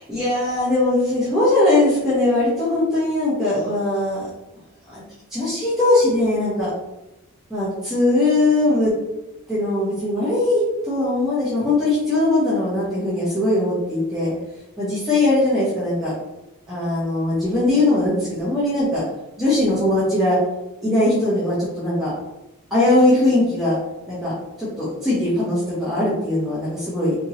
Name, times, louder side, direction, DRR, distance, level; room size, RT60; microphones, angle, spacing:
voice 1, 0.1-4.2 4.9-5.0 5.3-6.7 7.5-8.9 9.5-14.3 14.8-16.1 16.7-19.0 19.4-20.4 20.8-22.1 22.7-23.8 24.1-24.3 24.6-27.3, left 2 dB, ahead, -11 dB, 1.0 m, -20 dB
3.5 x 2.9 x 2.8 m, 0.95 s
head